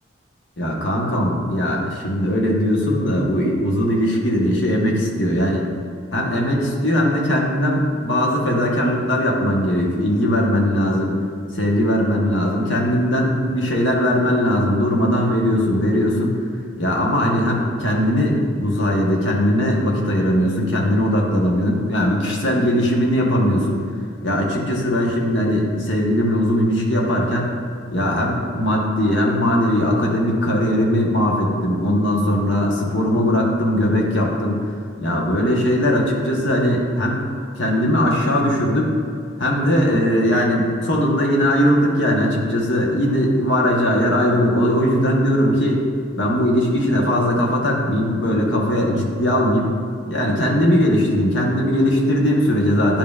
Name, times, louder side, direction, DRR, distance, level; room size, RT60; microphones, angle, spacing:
voice 1, 0.6-5.7 6.1-11.2 11.5-16.4 16.8-23.8 24.2-27.6 27.9-34.6 35.0-37.2 37.5-38.9 39.4-45.8 46.2-49.8 50.1-53.0, equal, 65° left, -2 dB, 1.1 m, -19 dB
10.5 x 5.3 x 2.4 m, 2.2 s
head